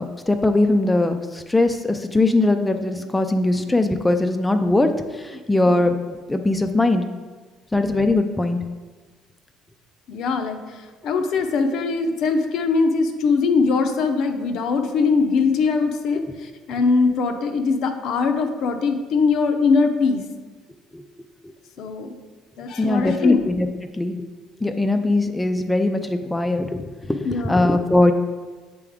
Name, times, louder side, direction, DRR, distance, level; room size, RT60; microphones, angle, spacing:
voice 1, 0.0-6.0 6.3-7.0 7.7-8.6 16.2-16.3 20.9-21.0 22.8-23.7 23.9-24.2 24.6-28.1, left 2 dB, 10° left, 6 dB, 0.3 m, -20 dB
voice 2, 10.1-20.2 21.8-22.1 22.6-23.5 27.2-27.7, left 4 dB, 65° left, 6 dB, 0.6 m, -21 dB
7.5 x 3.5 x 3.5 m, 1.3 s
cardioid pair, 105°, 0 cm